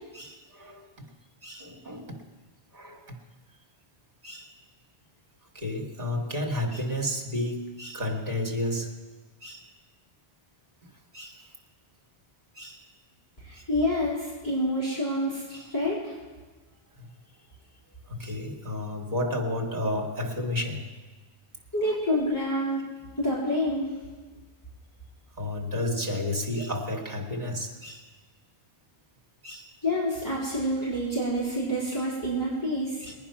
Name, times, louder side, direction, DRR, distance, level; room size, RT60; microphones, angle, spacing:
voice 1, 0.1-0.9 1.4-2.2 2.7-3.2 4.2-4.5 5.5-8.9 9.4-9.7 11.1-11.5 12.6-12.9 13.5-13.6 15.5-15.7 17.0-17.1 18.1-20.9 21.8-22.0 25.4-28.1 29.4-29.7 33.0-33.1, left 1 dB, 45° right, 0 dB, 2.3 m, -32 dB
voice 2, 13.5-16.1 21.7-22.8 23.2-23.9 29.8-33.1, equal, 20° left, -9 dB, 3.7 m, -28 dB
21.0 x 9.5 x 5.9 m, 1.3 s
omnidirectional pair, 1.0 m